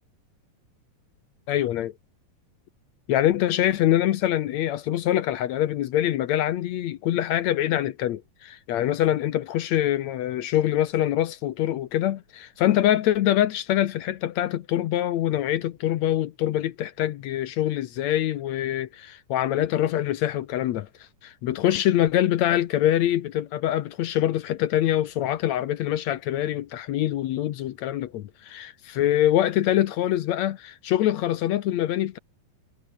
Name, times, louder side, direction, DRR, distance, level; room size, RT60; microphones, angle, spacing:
voice 1, 1.5-1.9 3.1-20.9 21.2-32.2, left 12 dB, 70° left, 1.9 m, -24 dB
omnidirectional pair, 3.9 m